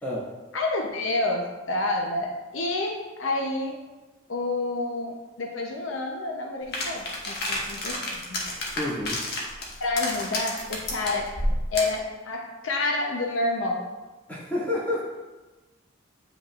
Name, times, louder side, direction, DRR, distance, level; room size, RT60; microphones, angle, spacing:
voice 1, 0.5-3.7 4.3-8.4 9.8-11.3 11.7-13.8, left 2 dB, 85° left, 2 dB, 0.8 m, -29 dB
sound 1, 6.7-12.0, left 1 dB, 55° left, 1.3 m, -30 dB
voice 2, 8.7-9.2 14.3-15.0, left 1 dB, 10° left, -8 dB, 2.1 m, -29 dB
8.6 x 5.3 x 2.5 m, 1.2 s
head